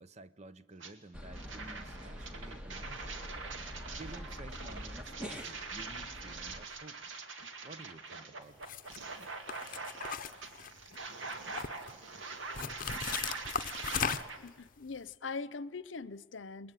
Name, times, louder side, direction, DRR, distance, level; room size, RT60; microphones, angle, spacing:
voice 1, 0.0-3.2 3.9-7.0 7.6-8.7, right 2 dB, 35° right, 0.8 m, -52 dB
sound 1, 0.8-0.9 1.3-14.4, right 4 dB, 80° right, 2.3 m, -43 dB
sound 2, 1.1-6.6, equal, 5° right, 1.8 m, -45 dB
sound 3, 8.6-9.0 9.5-11.0 11.3-11.9 12.5-14.5, left 7 dB, 45° left, 0.8 m, -36 dB
voice 2, 14.4-16.7, left 4 dB, 75° left, 0.8 m, -42 dB
29.0 x 21.0 x 9.1 m
head